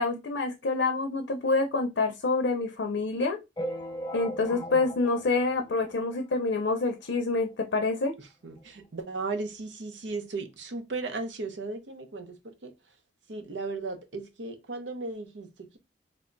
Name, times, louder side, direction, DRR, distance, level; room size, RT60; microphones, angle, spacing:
voice 1, 0.0-3.4 4.1-8.2, left 3 dB, 70° left, 0.5 m, -27 dB
sound 1, 3.6-6.4 6.9-7.0 7.2-7.3 7.6-7.7 8.6-8.7 9.1-9.2, equal, 20° left, 0.3 m, -39 dB
voice 2, 4.5-4.8 8.2-12.7 13.3-15.8, right 3 dB, 75° right, 0.7 m, -36 dB
3.4 x 2.2 x 3.8 m
head